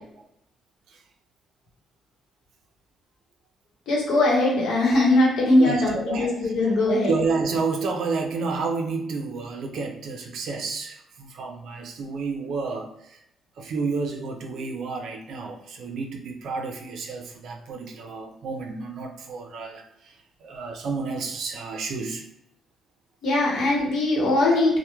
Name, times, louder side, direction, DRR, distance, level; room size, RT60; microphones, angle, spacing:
voice 1, 3.9-7.1 23.2-24.8, left 2 dB, 75° left, -3 dB, 0.9 m, -20 dB
voice 2, 5.6-6.8 7.1-13.2 13.6-22.2, right 4 dB, 70° right, 3 dB, 0.4 m, -30 dB
2.9 x 2.1 x 2.2 m, 0.79 s
cardioid pair, 90°, 0 cm